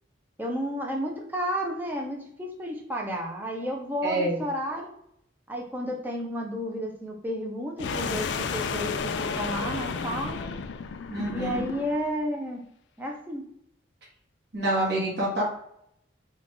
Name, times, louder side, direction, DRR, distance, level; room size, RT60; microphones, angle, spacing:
voice 1, 0.4-4.9 5.5-10.5 11.3-12.6 13.0-13.4, equal, 10° right, 0 dB, 0.6 m, -32 dB
voice 2, 4.0-4.4 11.1-11.7 14.5-15.4, right 1 dB, 55° right, -4 dB, 1.4 m, -27 dB
sound 1, 7.8-12.1, left 5 dB, 65° left, 0.3 m, -32 dB
3.5 x 2.4 x 3.6 m, 0.74 s
head